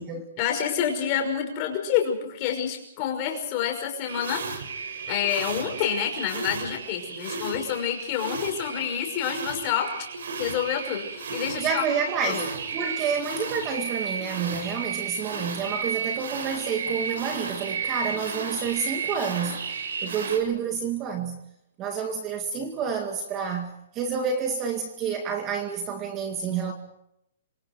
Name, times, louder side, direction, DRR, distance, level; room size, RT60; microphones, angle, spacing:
voice 1, 0.4-4.4 5.1-9.9 10.4-11.8 12.2-12.5, left 9 dB, 25° left, 3 dB, 5.8 m, -28 dB
sound 1, 4.1-20.4, right 5 dB, 65° right, 6.2 m, -33 dB
voice 2, 11.6-21.4 21.8-26.7, right 6 dB, 15° right, 4 dB, 2.0 m, -29 dB
27.0 x 26.0 x 4.7 m, 0.79 s
hypercardioid pair, 175°, 0 cm